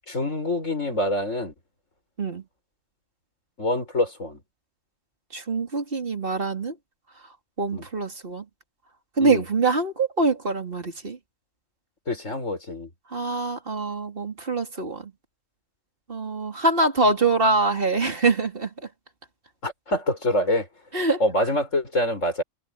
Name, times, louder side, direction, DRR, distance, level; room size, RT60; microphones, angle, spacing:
voice 1, 0.1-1.5 3.6-4.4 7.7-7.8 9.2-9.4 12.1-12.9 19.6-20.7 21.2-22.4, left 1 dB, 85° left, 6.4 m, -25 dB
voice 2, 5.3-6.8 7.6-8.5 9.2-11.2 13.1-15.1 16.1-18.7 20.9-21.2, right 3 dB, 45° right, 3.3 m, -24 dB
omnidirectional pair, 1.3 m